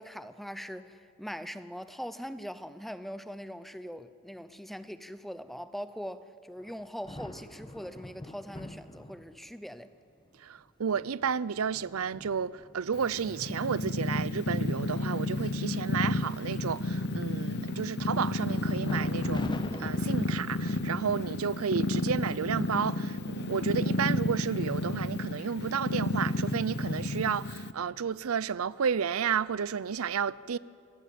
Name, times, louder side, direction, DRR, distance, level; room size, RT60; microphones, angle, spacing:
voice 1, 0.0-9.9, equal, ahead, 0.7 m, -41 dB
sound 1, 6.6-9.6 10.3-10.4 10.8-14.5 15.0-15.1 15.4-15.8 16.2-17.0 18.8-19.9, left 1 dB, 20° left, 1.2 m, -45 dB
voice 2, 10.4-30.6, right 7 dB, 85° right, 0.5 m, -32 dB
Purr, 12.9-27.7, left 2 dB, 50° left, 0.9 m, -31 dB
26.5 x 16.5 x 8.6 m
head